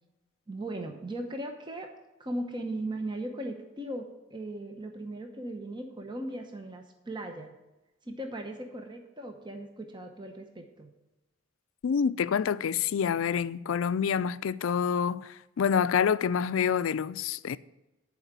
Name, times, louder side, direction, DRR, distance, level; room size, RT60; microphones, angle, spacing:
voice 1, 0.5-1.9 2.2-7.6 8.0-10.9, right 1 dB, 20° right, 0.9 m, -38 dB
voice 2, 11.8-17.6, left 7 dB, 80° left, 0.4 m, -27 dB
11.0 x 4.9 x 8.1 m
head